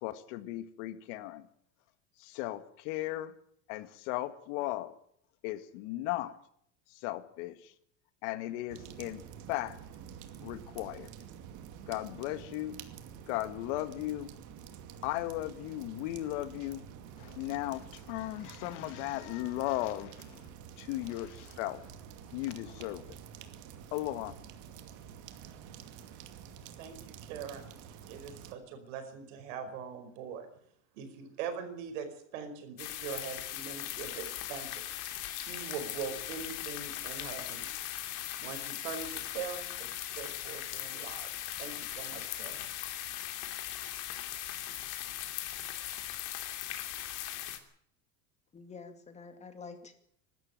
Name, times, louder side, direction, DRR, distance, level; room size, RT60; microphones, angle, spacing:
voice 1, 0.0-1.5 2.2-3.3 3.7-4.9 5.4-6.3 6.9-7.7 8.2-9.2 9.5-9.8 10.4-11.1 11.9-12.8 13.3-14.3 15.0-16.8 17.2-20.4 20.8-21.8 22.3-23.2 23.9-24.3, left 16 dB, 70° left, 12 dB, 1.9 m, -36 dB
sound 1, 8.7-28.5, right 8 dB, 50° right, 2.5 m, -49 dB
voice 2, 26.8-27.8 28.1-30.5 30.9-34.8 35.3-37.8 38.4-39.9 40.2-41.3 41.6-42.7, right 6 dB, 85° right, 8 dB, 5.2 m, -42 dB
sound 2, 32.8-47.6, left 13 dB, 55° left, 3.1 m, -39 dB
voice 3, 48.5-49.9, left 4 dB, 20° left, 8 dB, 2.4 m, -47 dB
23.5 x 13.0 x 9.0 m, 0.68 s
cardioid pair, 150°, 37 cm